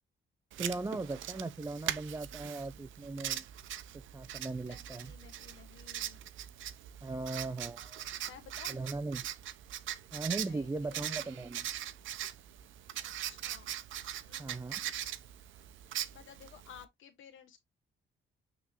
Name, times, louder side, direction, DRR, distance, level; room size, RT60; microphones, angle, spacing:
Writing, 0.5-16.8, right 12 dB, 75° right, 0.7 m, -41 dB
voice 1, 0.6-3.5 3.9-5.1 7.0-8.1 8.7-9.3 10.1-11.7 14.4-14.8, right 3 dB, 15° right, 0.6 m, -38 dB
voice 2, 4.6-6.2 8.2-8.8 10.4-11.4 13.0-13.7 14.2-14.9 16.1-17.6, left 9 dB, 85° left, 1.4 m, -55 dB
9.0 x 3.8 x 3.0 m
cardioid pair, 90°, 20 cm